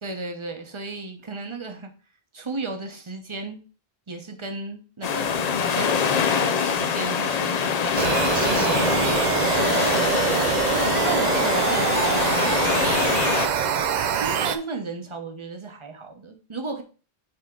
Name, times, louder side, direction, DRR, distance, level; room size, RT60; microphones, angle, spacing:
voice 1, 0.0-1.9 2.3-3.6 4.1-8.0 8.4-10.5 11.0-13.2 14.1-16.8, right 3 dB, 30° right, 5 dB, 0.9 m, -35 dB
sound 1, 5.0-13.5, left 6 dB, 50° left, 0.5 m, -24 dB
sound 2, 8.0-14.6, right 8 dB, 55° right, 0.5 m, -24 dB
7.7 x 3.6 x 3.7 m, 0.36 s
omnidirectional pair, 1.1 m